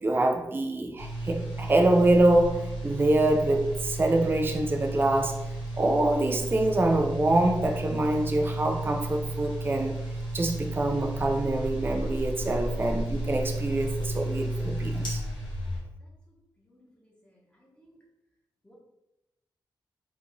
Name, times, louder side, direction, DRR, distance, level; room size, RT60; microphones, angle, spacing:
voice 1, 0.0-5.4 5.8-10.0 10.3-15.2, right 2 dB, 25° right, 3 dB, 0.4 m, -25 dB
sound 1, 1.0-15.8, right 1 dB, 70° left, 1.2 m, -33 dB
voice 2, 16.6-17.9 18.6-18.7, equal, 10° left, -3 dB, 1.2 m, -61 dB
2.9 x 2.4 x 3.8 m, 0.94 s
cardioid pair, 65°, 8 cm